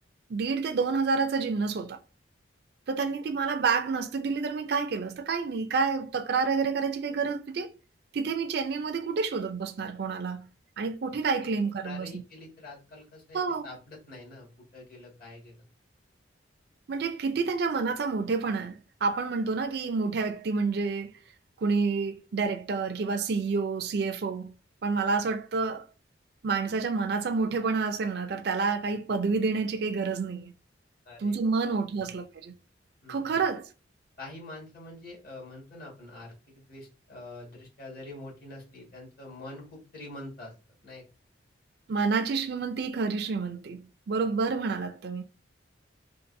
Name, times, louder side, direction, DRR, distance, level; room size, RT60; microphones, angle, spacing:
voice 1, 0.3-2.0 2.9-7.7 8.1-10.5 10.8-12.2 13.3-13.7 16.9-21.1 21.6-24.5 24.8-25.9 26.4-30.5 31.2-32.5 33.1-33.7 41.9-45.2, right 4 dB, 55° right, 0.4 m, -29 dB
voice 2, 11.8-15.7 31.1-32.1 33.0-33.4 34.2-40.5 40.8-41.0, left 2 dB, 50° left, 1.7 m, -45 dB
3.9 x 2.5 x 2.6 m
head